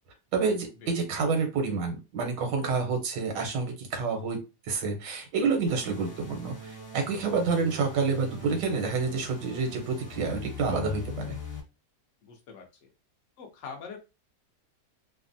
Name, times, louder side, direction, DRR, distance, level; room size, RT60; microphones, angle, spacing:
voice 1, 0.3-4.4 4.7-11.4, right 4 dB, 90° right, 3 dB, 1.5 m, -28 dB
sound 1, 5.7-11.6, left 3 dB, 40° left, 1.3 m, -42 dB
voice 2, 12.2-12.9 13.4-14.0, left 5 dB, 55° left, 2 dB, 0.9 m, -43 dB
3.3 x 2.1 x 2.6 m, 0.27 s
omnidirectional pair, 1.9 m